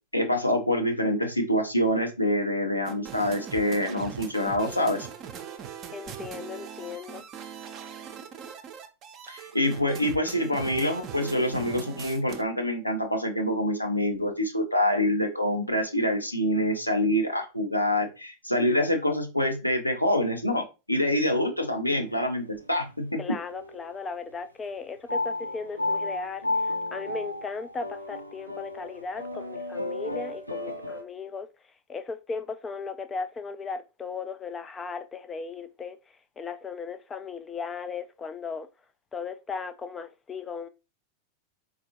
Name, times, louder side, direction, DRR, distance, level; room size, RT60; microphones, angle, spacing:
voice 1, 0.1-5.1 9.3-23.2, left 1 dB, 85° left, 0.7 m, -26 dB
sound 1, 2.9-12.4, right 8 dB, 35° right, 0.5 m, -41 dB
voice 2, 5.9-7.2 23.2-31.5 31.9-36.0 36.4-38.7 39.1-40.7, left 5 dB, 20° left, 0.3 m, -36 dB
sound 2, 22.0-22.8 23.5-24.1 25.1-31.0, left 2 dB, 90° right, 0.5 m, -33 dB
4.2 x 2.4 x 2.8 m
figure-of-eight pair, 90°, 0 cm